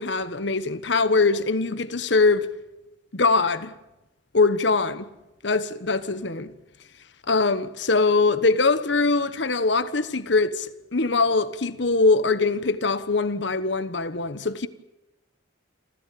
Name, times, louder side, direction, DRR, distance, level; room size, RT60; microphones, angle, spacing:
voice 1, 0.0-2.5 3.1-3.7 4.3-5.0 5.4-6.5 7.3-14.7, left 3 dB, 65° left, 1.2 m, -22 dB
28.0 x 14.5 x 8.4 m
head